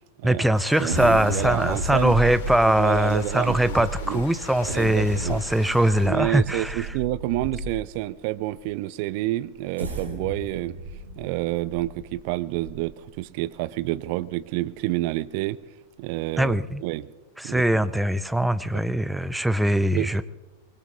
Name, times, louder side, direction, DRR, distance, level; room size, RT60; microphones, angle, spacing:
voice 1, 0.2-6.9 16.4-16.8 17.4-20.2, right 1 dB, 5° right, 14 dB, 0.6 m, -22 dB
sound 1, 0.5-6.1, left 4 dB, 55° left, 3.3 m, -42 dB
voice 2, 0.8-2.1 2.8-4.2 4.7-5.4 6.0-10.8 11.2-15.6 16.0-16.6 16.8-17.1 17.4-17.6 20.0-20.1, right 17 dB, 45° right, 17 dB, 0.5 m, -28 dB
sound 2, 0.9-8.0 8.6-8.7 9.5-13.1 13.5-13.6 14.1-14.3, equal, 75° right, 3.6 m, -33 dB
24.0 x 21.0 x 2.8 m, 1.2 s
figure-of-eight pair, 90°, 0 cm